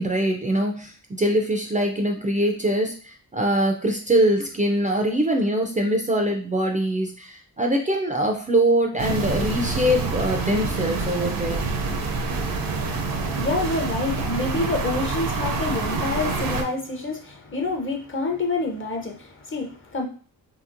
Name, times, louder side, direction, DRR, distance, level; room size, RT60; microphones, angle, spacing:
voice 1, 0.0-11.6, right 1 dB, 20° right, 2 dB, 0.4 m, -23 dB
sound 1, 9.0-16.6, right 4 dB, 65° right, 0.7 m, -27 dB
voice 2, 12.7-20.0, left 3 dB, 30° left, 3 dB, 0.7 m, -28 dB
2.9 x 2.8 x 2.5 m, 0.40 s
cardioid pair, 75°, 38 cm